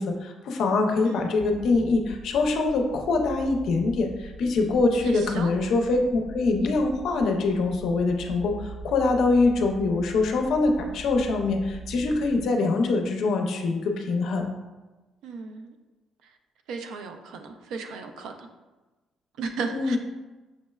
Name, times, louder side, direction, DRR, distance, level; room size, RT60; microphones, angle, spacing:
voice 1, 0.0-14.4 19.7-20.0, left 3 dB, 65° left, 3 dB, 0.5 m, -24 dB
voice 2, 1.0-1.4 5.0-5.5 15.2-15.8 16.7-18.5 19.4-20.0, right 4 dB, 85° right, 5 dB, 0.4 m, -35 dB
sound 1, 1.4-12.5, right 3 dB, 30° right, 0.8 m, -42 dB
6.0 x 2.1 x 2.2 m, 1.2 s
cardioid pair, 150°, 0 cm